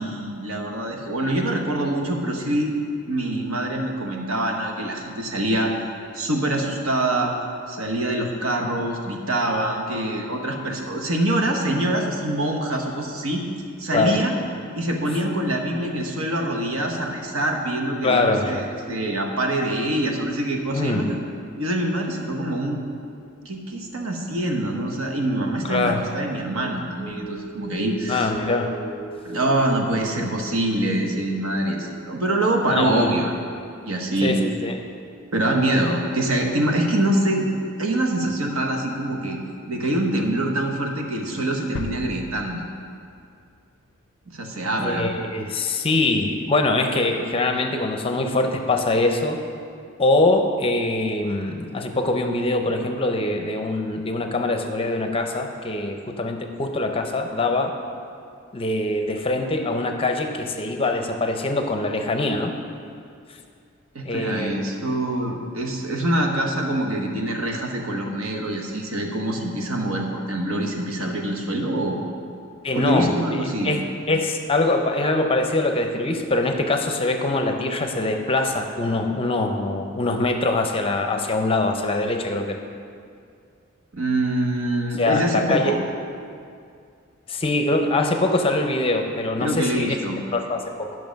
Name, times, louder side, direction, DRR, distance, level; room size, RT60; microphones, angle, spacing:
voice 1, 0.0-2.8 3.1-5.7 6.1-7.3 7.7-13.4 13.8-14.4 14.7-21.2 21.6-22.8 23.4-28.3 29.2-33.4 33.8-34.4 35.3-37.5 37.8-39.4 39.7-42.6 44.3-45.1 63.9-72.0 72.7-73.8 83.9-85.8 89.4-90.2, right 1 dB, 80° right, 2 dB, 1.1 m, -25 dB
voice 2, 18.0-18.6 20.7-21.1 25.6-26.0 28.1-28.7 32.7-33.1 34.2-34.7 44.8-49.4 50.0-57.7 58.5-62.5 64.0-64.5 72.6-73.1 73.6-73.8 74.1-82.6 85.0-85.8 87.3-90.0 90.3-91.0, left 2 dB, 25° left, 5 dB, 0.6 m, -23 dB
sound 1, 26.2-36.8 37.2-37.3, right 3 dB, 25° right, 0.9 m, -40 dB
sound 2, 41.8-43.6 43.9-44.0, left 4 dB, 75° left, 0.4 m, -37 dB
9.3 x 6.2 x 5.2 m, 2.3 s
head